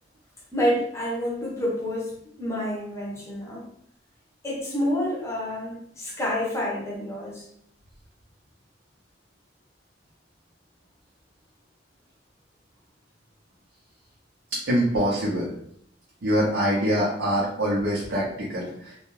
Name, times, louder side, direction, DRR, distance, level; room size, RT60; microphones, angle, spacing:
voice 1, 0.5-3.6 4.4-7.5, equal, 15° left, -3 dB, 0.7 m, -28 dB
voice 2, 14.5-15.5 16.2-19.0, equal, 85° right, -5 dB, 0.7 m, -24 dB
2.3 x 2.2 x 3.0 m, 0.71 s
head